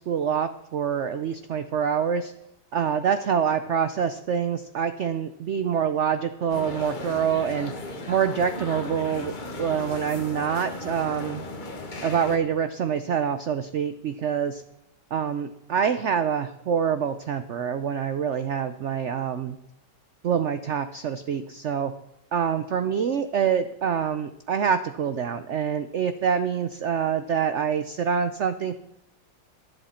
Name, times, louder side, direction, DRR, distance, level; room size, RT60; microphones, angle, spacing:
voice 1, 0.0-2.3 2.7-7.7 8.1-9.3 9.6-11.4 12.0-14.6 15.1-19.6 20.2-21.9 22.3-28.8, right 7 dB, 85° right, 11 dB, 0.6 m, -26 dB
sound 1, 6.5-12.4, left 2 dB, 30° left, 1.2 m, -36 dB
22.5 x 8.1 x 4.3 m, 0.83 s
omnidirectional pair, 2.0 m